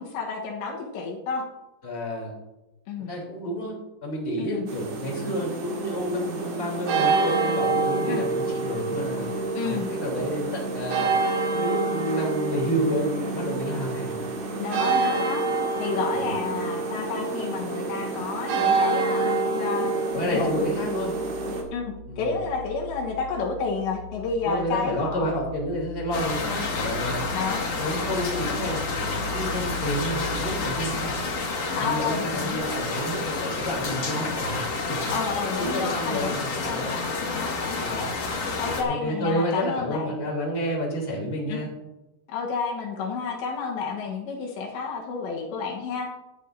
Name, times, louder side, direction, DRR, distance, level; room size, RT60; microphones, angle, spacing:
voice 1, 0.0-1.4 2.9-3.1 4.4-4.7 8.1-8.2 9.5-9.9 14.6-15.4 15.8-20.0 20.3-20.7 21.7-25.3 27.3-27.7 31.8-32.6 35.1-36.4 36.6-38.1 38.6-40.1 41.5-41.7 42.3-46.1, left 5 dB, 75° left, 0 dB, 3.4 m, -30 dB
voice 2, 1.8-2.3 3.1-9.3 9.6-11.2 11.5-14.3 16.1-16.4 20.1-21.1 22.1-22.4 24.4-27.2 27.8-31.2 31.8-35.0 35.5-37.0 37.8-38.1 38.9-41.7, equal, 15° left, -3 dB, 3.0 m, -30 dB
sound 1, 4.7-21.6, right 3 dB, 65° right, 4.1 m, -27 dB
sound 2, 20.1-31.1, left 3 dB, 45° right, 5.1 m, -39 dB
sound 3, 26.1-38.8, left 3 dB, 45° left, 2.2 m, -29 dB
17.0 x 11.5 x 2.7 m, 1.0 s
omnidirectional pair, 5.3 m